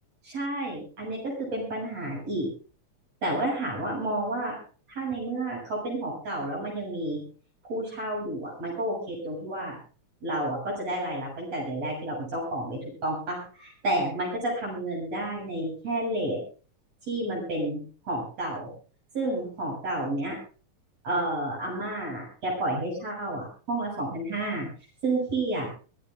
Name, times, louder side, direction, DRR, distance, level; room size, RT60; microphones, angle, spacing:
voice 1, 0.2-2.5 3.2-4.6 4.9-7.2 7.6-9.8 10.2-16.4 17.1-18.7 19.1-20.4 21.0-24.7 25.0-25.7, right 1 dB, 55° right, -3 dB, 8.6 m, -30 dB
25.0 x 10.0 x 3.7 m, 0.38 s
omnidirectional pair, 3.5 m